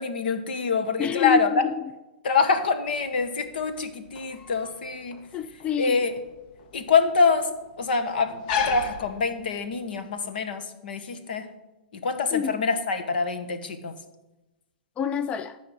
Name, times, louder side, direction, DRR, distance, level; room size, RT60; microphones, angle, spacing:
voice 1, 0.0-1.5 2.2-5.2 5.8-6.1 6.7-11.5 11.9-14.0, left 4 dB, 75° left, 1.5 m, -25 dB
voice 2, 1.0-1.9 5.3-6.0 12.3-12.6 15.0-15.6, left 8 dB, 20° left, 0.4 m, -28 dB
sound 1, 2.9-9.8, left 7 dB, 50° left, 1.0 m, -35 dB
13.5 x 5.0 x 7.7 m
hypercardioid pair, 125°, 5 cm